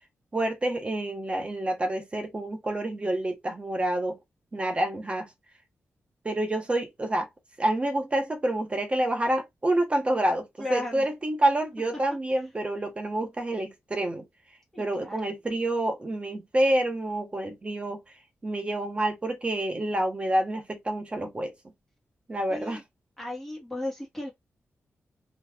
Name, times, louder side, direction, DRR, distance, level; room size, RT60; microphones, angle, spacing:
voice 1, 0.3-4.2 4.5-5.3 6.2-7.3 7.6-14.2 14.8-18.0 18.4-21.5 22.3-22.8, right 1 dB, 25° right, 0.9 m, -28 dB
voice 2, 10.6-11.1 14.7-15.3 22.5-22.8 23.2-24.3, left 2 dB, 5° left, 1.4 m, -35 dB
3.8 x 3.0 x 2.3 m
wide cardioid pair, 145°, 5 cm